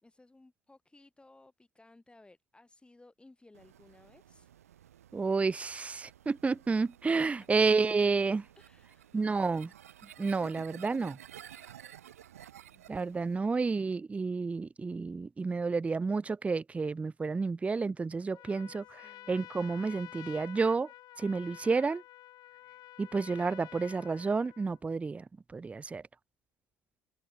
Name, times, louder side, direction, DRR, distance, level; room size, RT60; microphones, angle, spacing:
voice 1, 0.0-4.5 7.1-7.7 8.6-9.3 12.7-12.9 18.5-19.5, left 2 dB, 15° left, 2.0 m, -60 dB
sound 1, 3.5-13.4, right 11 dB, 90° right, 1.1 m, -54 dB
voice 2, 5.1-8.4 9.1-9.7 10.2-11.2 12.9-19.0 19.3-20.9 21.2-22.0 23.0-25.2 25.5-26.0, right 4 dB, 15° right, 0.4 m, -30 dB
Trumpet, 18.3-24.8, left 15 dB, 60° left, 1.2 m, -50 dB
open air
hypercardioid pair, 65°, 8 cm